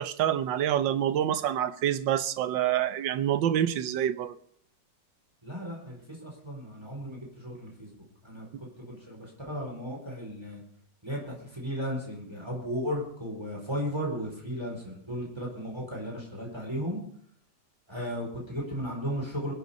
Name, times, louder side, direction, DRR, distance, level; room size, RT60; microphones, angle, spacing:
voice 1, 0.0-4.3, right 10 dB, 85° right, 1.5 m, -27 dB
voice 2, 5.4-7.9 8.2-8.5 8.8-10.6 11.0-17.0 17.9-19.5, equal, 15° right, 4.7 m, -35 dB
22.5 x 8.1 x 5.2 m
omnidirectional pair, 1.9 m